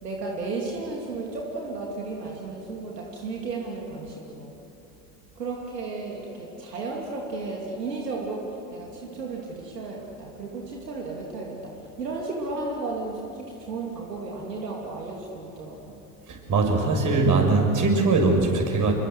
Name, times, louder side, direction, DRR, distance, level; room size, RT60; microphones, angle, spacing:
voice 1, 0.0-4.5 5.4-16.1, right 3 dB, 80° right, -1 dB, 2.8 m, -34 dB
voice 2, 16.3-18.9, right 3 dB, 40° right, 2 dB, 6.7 m, -21 dB
27.0 x 23.0 x 8.0 m, 2.8 s
figure-of-eight pair, 70°, 47 cm